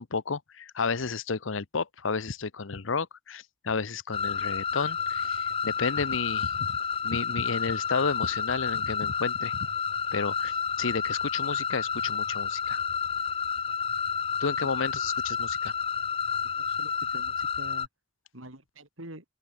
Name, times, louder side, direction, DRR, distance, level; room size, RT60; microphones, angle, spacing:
voice 1, 0.0-6.8 7.0-9.6 10.1-12.8 14.4-15.7, left 5 dB, 80° left, 0.9 m, -32 dB
sound 1, 4.1-17.9, left 7 dB, 25° left, 0.8 m, -30 dB
voice 2, 16.5-17.9 18.3-19.2, right 1 dB, 85° right, 6.4 m, -45 dB
open air
head